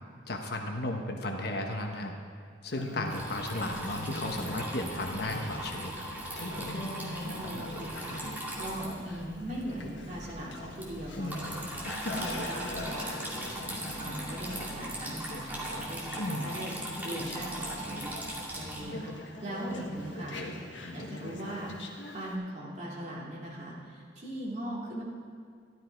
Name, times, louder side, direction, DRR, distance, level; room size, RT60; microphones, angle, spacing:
voice 1, 0.3-2.1 2.6-5.9, left 1 dB, 60° left, 3 dB, 1.2 m, -34 dB
Conversation, 2.7-22.4, left 1 dB, 75° left, 1.4 m, -41 dB
Water tap faucet / Trickle dribble, 3.1-18.8, right 1 dB, 10° right, 2.0 m, -40 dB
voice 2, 6.8-8.2 8.6-13.2 14.0-16.7 17.0-19.1 19.4-21.7 22.1-25.0, right 1 dB, 40° right, -5 dB, 2.5 m, -40 dB
12.5 x 12.5 x 4.6 m, 2.1 s
head